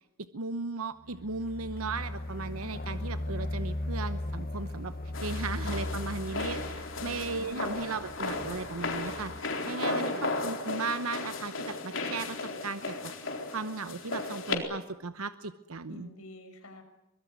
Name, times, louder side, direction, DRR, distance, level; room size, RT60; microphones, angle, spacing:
voice 1, 0.3-12.4 12.6-16.1, right 4 dB, 85° right, 12 dB, 1.0 m, -36 dB
sound 1, 1.1-9.4, left 1 dB, 40° left, 1.5 m, -37 dB
sound 2, 5.1-14.6, left 3 dB, 60° left, 4.1 m, -35 dB
voice 2, 7.0-7.8 10.0-10.4 15.9-16.8, left 1 dB, 90° left, 6 dB, 6.5 m, -49 dB
24.0 x 22.0 x 9.4 m, 0.84 s
head